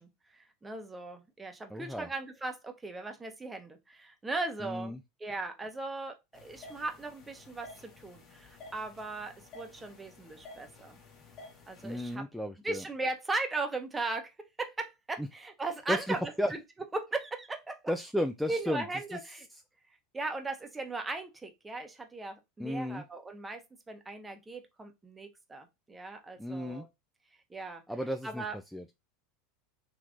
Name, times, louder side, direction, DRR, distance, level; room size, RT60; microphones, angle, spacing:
voice 1, 0.0-4.9 5.2-11.0 11.7-12.2 12.6-14.3 14.6-16.2 16.5-16.6 16.9-17.8 18.5-19.5 20.1-23.6 23.9-26.9 27.5-27.8 28.2-28.6, right 3 dB, 15° right, 0.9 m, -38 dB
voice 2, 1.7-2.1 4.6-5.0 11.8-12.8 15.2-15.3 15.9-16.5 17.9-18.8 22.6-23.0 26.4-26.9 27.9-28.4 28.7-28.8, equal, ahead, 0.4 m, -33 dB
sound 1, 6.3-12.1, left 3 dB, 45° left, 1.1 m, -53 dB
3.4 x 3.1 x 2.5 m
hypercardioid pair, 85°, 0 cm